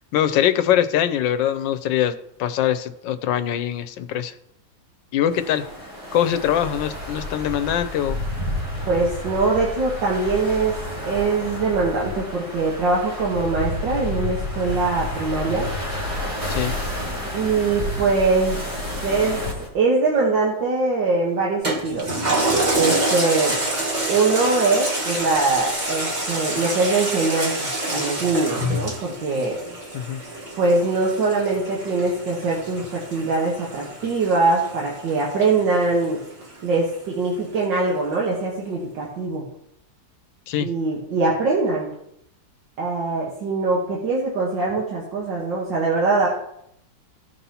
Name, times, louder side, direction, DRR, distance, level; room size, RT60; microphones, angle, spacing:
voice 1, 0.1-4.3 5.1-5.7 6.1-8.2 16.5-16.7 29.9-30.2 40.5-40.7, left 10 dB, 80° left, 10 dB, 1.3 m, -22 dB
sound 1, 5.3-19.7, left 1 dB, 55° right, 3.2 m, -30 dB
voice 2, 8.9-10.8 11.0-15.7 17.3-18.6 19.0-19.4 19.7-22.1 22.7-23.6 24.1-29.6 30.6-36.2 36.6-39.4 40.6-41.9 42.8-46.3, right 3 dB, 80° right, -3 dB, 2.0 m, -22 dB
Toilet flush, 21.6-36.5 36.9-37.0, right 1 dB, 25° right, 1.3 m, -27 dB
16.0 x 5.4 x 2.9 m, 0.77 s
omnidirectional pair, 2.0 m